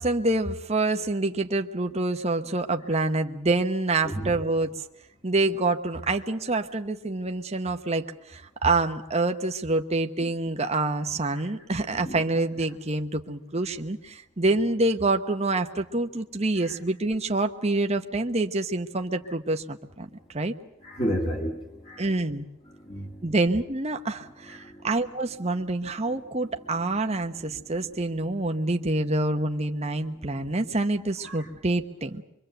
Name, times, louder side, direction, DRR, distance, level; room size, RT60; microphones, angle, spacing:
voice 1, 0.0-4.7 5.2-20.5 22.0-22.4 23.2-32.2, right 2 dB, 30° right, 5 dB, 1.1 m, -27 dB
voice 2, 4.0-4.4 12.0-12.2 20.8-22.1 22.7-23.3 24.5-24.9 30.4-30.5 31.2-31.5, equal, 25° left, 0 dB, 2.3 m, -32 dB
24.5 x 24.0 x 8.0 m, 0.82 s
head